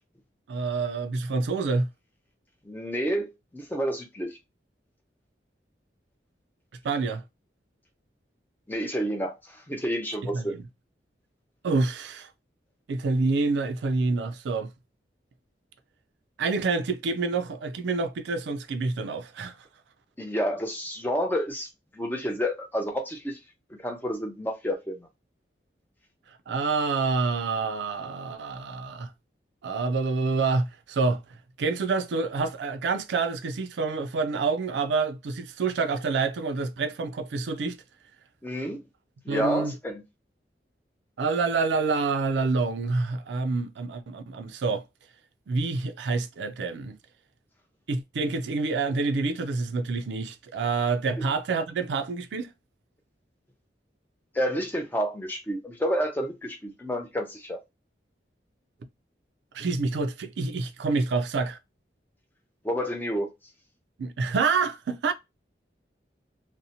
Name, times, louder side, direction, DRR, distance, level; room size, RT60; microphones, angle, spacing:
voice 1, 0.5-1.9 6.8-7.2 10.3-10.6 11.6-12.3 12.9-14.7 16.4-19.5 26.5-29.1 29.6-31.2 31.6-37.8 39.3-39.8 41.2-44.8 45.5-46.9 47.9-52.5 59.5-61.6 64.0-65.1, right 4 dB, 80° right, 0.4 m, -27 dB
voice 2, 2.7-4.4 8.7-10.6 20.2-21.7 21.9-23.4 23.7-25.1 38.4-38.8 39.3-40.0 54.3-57.6 62.6-63.3, equal, 10° left, 0.5 m, -29 dB
2.7 x 2.1 x 2.6 m
head